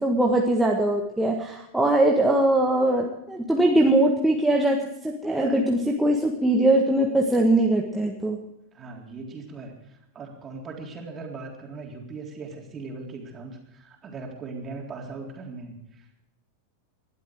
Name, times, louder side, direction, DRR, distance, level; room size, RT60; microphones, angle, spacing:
voice 1, 0.0-4.8 5.0-8.4, right 1 dB, 5° right, -1 dB, 1.7 m, -21 dB
voice 2, 8.7-16.2, right 3 dB, 25° right, 1 dB, 3.8 m, -39 dB
20.0 x 12.5 x 4.9 m, 0.85 s
figure-of-eight pair, 90°, 0 cm